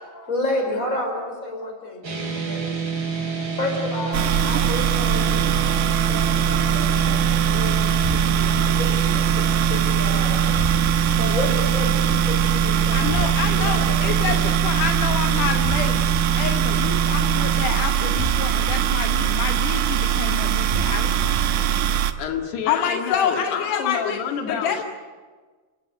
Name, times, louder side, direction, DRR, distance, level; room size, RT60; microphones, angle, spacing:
voice 1, 0.1-2.7 3.5-14.6 15.3-15.5, left 1 dB, 20° left, 4 dB, 5.0 m, -31 dB
sound 1, 2.0-17.7, right 6 dB, 35° right, 4.5 m, -25 dB
sound 2, 4.1-22.1, right 10 dB, 70° right, 1.9 m, -22 dB
voice 2, 12.9-16.1 16.4-21.1 22.7-24.2 24.5-24.8, left 8 dB, 65° left, 4 dB, 2.3 m, -27 dB
sound 3, 15.6-16.2 18.2-18.8 20.7-21.3, right 1 dB, 15° right, 2.8 m, -29 dB
voice 3, 22.2-24.8, left 6 dB, 80° left, 4 dB, 4.1 m, -28 dB
29.5 x 18.0 x 9.2 m, 1.4 s
omnidirectional pair, 4.6 m